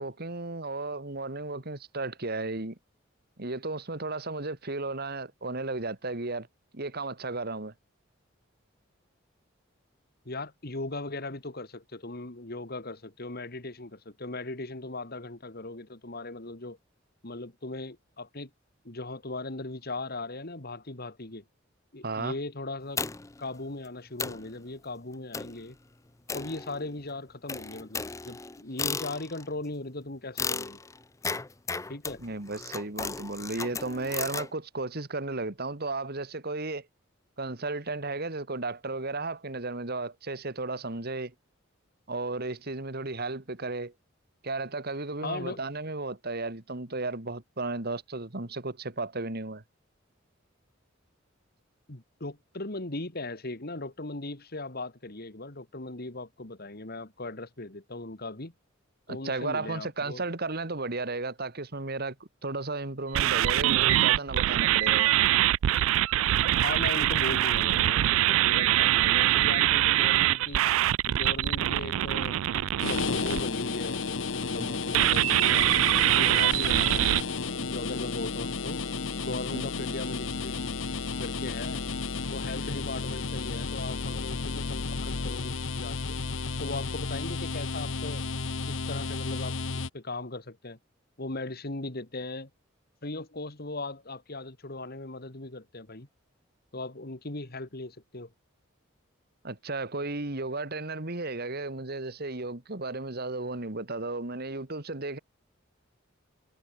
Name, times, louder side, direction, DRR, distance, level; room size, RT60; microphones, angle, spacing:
voice 1, 0.0-2.8 3.4-6.5 6.7-7.7 22.0-22.3 32.2-36.9 37.4-41.3 42.1-43.9 44.4-49.6 59.1-62.2 62.4-65.1 74.6-74.7 79.5-79.9 99.4-105.2, right 3 dB, 50° right, 2.2 m, -34 dB
voice 2, 10.3-16.8 17.2-18.5 18.8-21.4 21.9-23.0 23.4-25.8 26.3-30.8 31.9-32.2 45.2-45.6 51.9-58.5 59.1-60.2 66.6-70.6 71.1-75.7 76.1-78.8 79.2-80.7 81.2-81.8 82.3-86.2 86.6-88.3 88.7-90.8 91.2-92.5 93.0-96.1 96.7-98.3, left 2 dB, 50° left, 2.4 m, -38 dB
sound 1, 23.0-23.4 23.9-24.0 24.2-24.5 25.3-25.6 26.3-27.0 27.5-29.5 30.4-34.5, left 4 dB, 15° left, 0.6 m, -35 dB
sound 2, 63.1-73.4 74.9-77.2, right 13 dB, 90° right, 0.3 m, -24 dB
sound 3, 72.8-89.9, left 4 dB, 70° left, 1.0 m, -32 dB
head